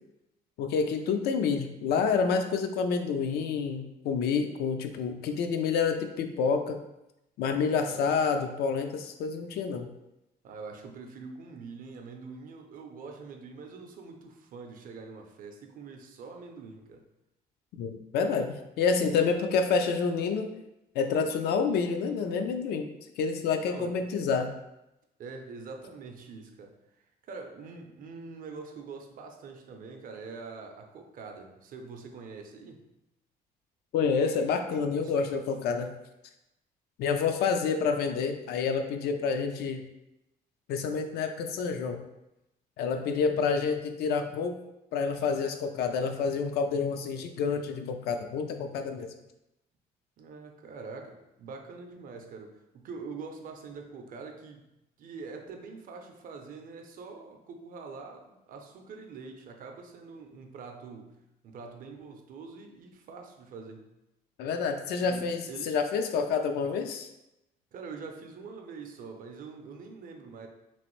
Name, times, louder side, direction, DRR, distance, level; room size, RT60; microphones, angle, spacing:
voice 1, 0.6-6.8 7.4-9.9 17.8-20.5 21.0-22.9 23.2-24.5 33.9-35.9 37.0-39.8 40.7-42.0 42.8-44.5 44.9-49.1 64.4-67.1, left 5 dB, 70° left, 6 dB, 0.4 m, -28 dB
voice 2, 7.7-8.2 10.4-17.0 23.5-24.0 25.2-32.8 35.0-35.1 50.2-54.7 55.0-63.9 64.9-65.8 67.7-70.5, right 4 dB, 55° right, 4 dB, 0.5 m, -44 dB
3.0 x 2.5 x 3.0 m, 0.90 s
cardioid pair, 110°, 17 cm